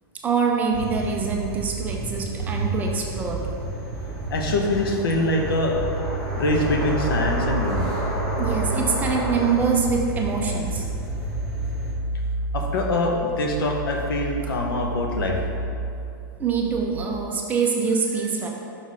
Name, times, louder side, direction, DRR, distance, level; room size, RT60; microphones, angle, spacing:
voice 1, 0.2-3.4 8.4-10.9 16.4-18.5, right 5 dB, 15° right, 0 dB, 0.5 m, -24 dB
sound 1, 0.7-11.9, right 3 dB, 10° left, 1.1 m, -31 dB
sound 2, 2.7-9.5, equal, 30° left, 1.3 m, -32 dB
voice 2, 4.3-5.8 6.3-7.9 12.5-15.4, left 1 dB, 80° left, 1 dB, 1.0 m, -24 dB
sound 3, 5.6-17.2, right 1 dB, 80° right, 0.7 m, -31 dB
5.9 x 4.2 x 4.8 m, 2.5 s
supercardioid pair, 160°, 12 cm